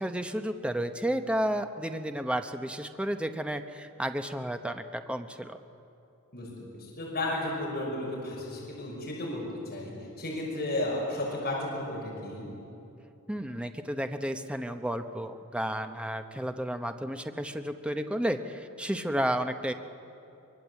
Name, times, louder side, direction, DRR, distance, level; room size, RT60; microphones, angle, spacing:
voice 1, 0.0-5.6 13.3-19.7, equal, 5° right, 6 dB, 0.8 m, -32 dB
voice 2, 6.7-9.4 9.7-12.5, left 1 dB, 45° left, -4 dB, 6.0 m, -33 dB
24.5 x 22.0 x 8.3 m, 2.8 s
head